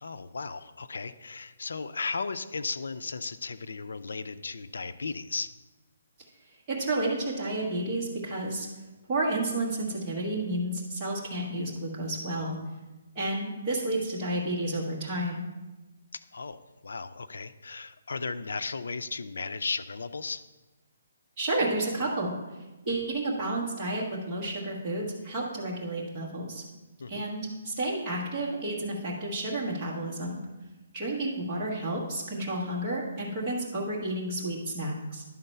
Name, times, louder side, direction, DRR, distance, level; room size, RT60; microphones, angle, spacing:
voice 1, 0.0-5.5 16.1-20.5 27.0-27.3, left 4 dB, 80° left, 12 dB, 0.4 m, -35 dB
voice 2, 6.7-8.7 9.1-12.5 13.1-15.4 21.4-22.3 22.8-26.6 27.1-30.4 30.9-35.2, right 1 dB, 15° right, -6 dB, 1.4 m, -31 dB
11.0 x 3.9 x 5.5 m, 1.1 s
hypercardioid pair, 180°, 0 cm